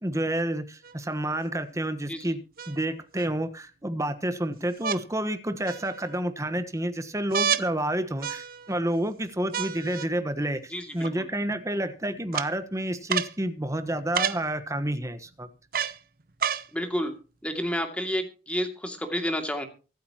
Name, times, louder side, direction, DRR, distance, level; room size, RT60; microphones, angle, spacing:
voice 1, 0.0-2.4 2.7-15.5, right 1 dB, 20° right, 10 dB, 1.2 m, -29 dB
sound 1, 0.8-0.9 2.6-3.3 4.8-5.0 5.7-6.2 7.3-7.7 8.2-8.8 9.5-10.1 11.0-11.1 12.3-12.5 13.1-13.3 14.1-14.4 15.7-16.0 16.4-16.7 17.5-17.6, right 7 dB, 55° right, 0.8 m, -29 dB
voice 2, 10.7-11.3 16.7-17.2 17.4-19.7, equal, 5° left, 4 dB, 2.4 m, -30 dB
24.0 x 8.8 x 3.0 m, 0.34 s
head